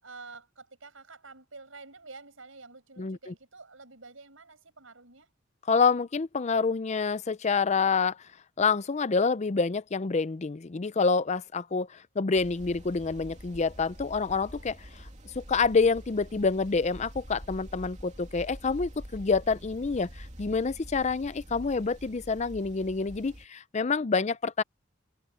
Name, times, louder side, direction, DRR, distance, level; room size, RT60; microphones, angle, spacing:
voice 1, 0.0-5.3, right 3 dB, 80° right, 6.6 m, -49 dB
voice 2, 3.0-3.3 5.7-8.2 8.6-14.8 15.4-24.6, left 4 dB, 35° left, 0.5 m, -27 dB
sound 1, 12.3-23.4, equal, 35° right, 2.9 m, -46 dB
head